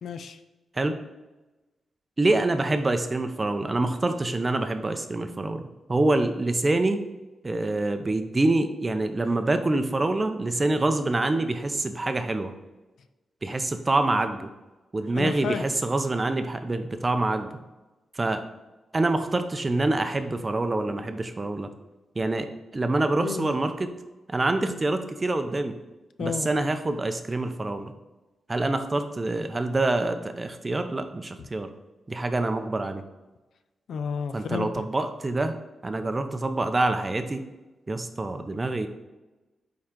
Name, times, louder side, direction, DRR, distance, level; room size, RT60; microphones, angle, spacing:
voice 1, 0.0-0.4 15.1-15.7 23.2-23.5 26.2-26.5 31.4-31.5 33.9-34.8, left 6 dB, 70° left, 10 dB, 0.4 m, -31 dB
voice 2, 2.2-7.0 7.4-12.5 13.4-14.5 14.9-17.5 18.1-18.4 18.9-21.7 22.2-22.5 22.7-23.9 24.3-25.8 26.2-27.9 28.5-31.7 32.1-33.0 34.3-35.5 35.8-37.4 37.9-38.9, right 2 dB, 20° right, 8 dB, 0.5 m, -26 dB
8.8 x 3.8 x 3.7 m, 1.1 s
wide cardioid pair, 135°, 0 cm